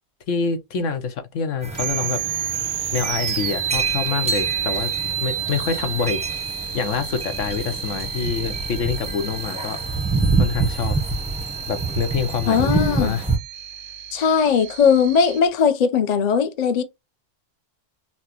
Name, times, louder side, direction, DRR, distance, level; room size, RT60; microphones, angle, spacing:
voice 1, 0.3-2.2 2.9-6.4 6.7-9.8 10.4-11.0 11.7-13.3, left 6 dB, 90° left, 1.2 m, -26 dB
sound 1, 1.6-13.4, right 4 dB, 5° right, 0.5 m, -27 dB
sound 2, 1.7-15.4, right 9 dB, 85° right, 1.0 m, -30 dB
voice 2, 12.5-13.2 14.1-16.8, left 6 dB, 45° left, 0.6 m, -19 dB
5.9 x 2.1 x 2.8 m
omnidirectional pair, 1.3 m